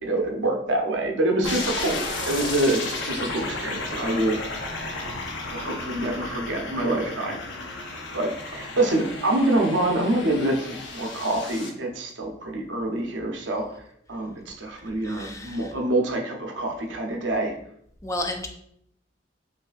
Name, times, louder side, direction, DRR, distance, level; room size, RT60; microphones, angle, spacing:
voice 1, 0.0-5.0 5.5-7.4 8.1-13.7 14.1-17.5, right 1 dB, 70° right, 1 dB, 0.7 m, -26 dB
sound 1, 1.4-11.7, left 2 dB, 70° left, 0.6 m, -33 dB
voice 2, 15.0-15.7 18.0-18.5, left 1 dB, 15° left, 4 dB, 0.3 m, -32 dB
4.6 x 2.7 x 2.5 m, 0.71 s
head